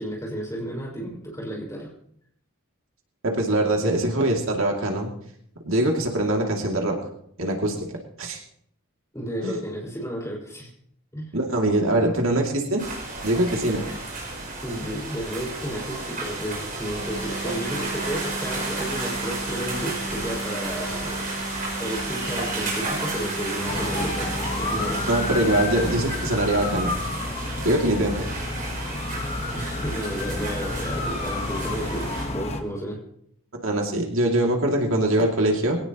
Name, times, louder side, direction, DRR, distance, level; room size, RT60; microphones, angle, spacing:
voice 1, 0.0-1.9 9.1-10.7 11.1-11.3 14.6-21.3 21.8-25.0 25.3-25.5 29.5-33.0, equal, 15° left, -3 dB, 5.7 m, -32 dB
voice 2, 3.2-5.1 5.6-7.0 7.4-8.4 9.4-9.6 11.3-12.8 13.2-13.8 25.1-26.9 27.6-28.3 33.6-35.8, right 1 dB, 70° right, 1 dB, 2.6 m, -23 dB
sound 1, 12.8-32.2, right 3 dB, 40° right, 6.5 m, -33 dB
sound 2, 17.0-26.0, right 1 dB, 75° left, 5.9 m, -35 dB
sound 3, 23.7-32.6, left 2 dB, 30° left, 1.3 m, -30 dB
22.0 x 17.5 x 3.0 m, 0.69 s
head